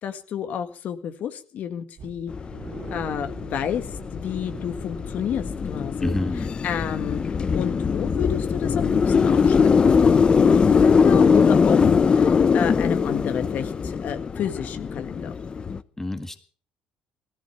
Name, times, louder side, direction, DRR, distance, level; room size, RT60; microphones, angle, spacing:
voice 1, 0.0-2.3 2.9-3.9 4.1-7.2 7.5-11.8 12.1-15.3, left 9 dB, 60° left, 8 dB, 1.7 m, -30 dB
sound 1, 2.0-9.7 10.0-10.2 10.6-10.7, right 6 dB, 50° right, 2.3 m, -45 dB
sound 2, 2.3-15.8, left 5 dB, 30° left, 0.8 m, -21 dB
voice 2, 6.0-6.5 16.0-16.4, left 1 dB, 10° left, 8 dB, 1.7 m, -27 dB
16.5 x 14.5 x 5.8 m, 0.43 s
cardioid pair, 110°, 3 cm